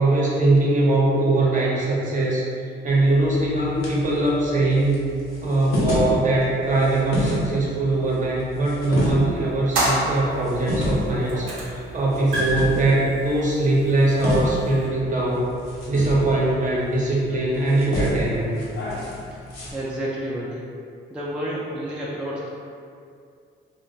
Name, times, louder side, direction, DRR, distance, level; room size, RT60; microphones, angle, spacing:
voice 1, 0.0-2.4 2.8-5.0 5.4-15.5 15.9-18.7, right 2 dB, 40° right, -5 dB, 0.6 m, -21 dB
sound 1, 2.9-19.7, left 1 dB, 90° left, 0.7 m, -31 dB
sound 2, 9.7-10.8 11.3-11.8 12.1-14.9, right 1 dB, 80° right, 0.5 m, -27 dB
voice 2, 19.7-20.6 21.1-22.5, equal, 5° right, -7 dB, 0.3 m, -30 dB
2.4 x 2.1 x 2.6 m, 2.3 s
cardioid pair, 90°, 20 cm